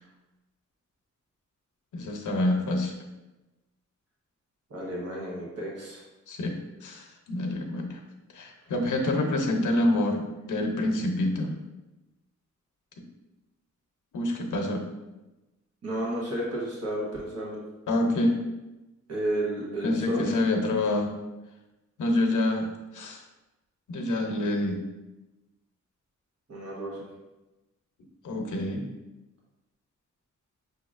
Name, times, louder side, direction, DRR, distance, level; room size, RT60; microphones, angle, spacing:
voice 1, 1.9-2.9 6.3-6.6 6.8-8.0 8.3-11.5 14.1-14.8 17.9-18.4 19.8-21.1 22.0-22.7 22.9-23.2 23.9-24.8 28.2-28.8, left 1 dB, 85° left, 3 dB, 0.7 m, -27 dB
voice 2, 4.7-6.0 15.8-17.6 19.1-20.3 26.5-27.1, right 1 dB, 55° right, -4 dB, 1.2 m, -32 dB
6.3 x 2.8 x 2.5 m, 1.0 s
wide cardioid pair, 125°, 30 cm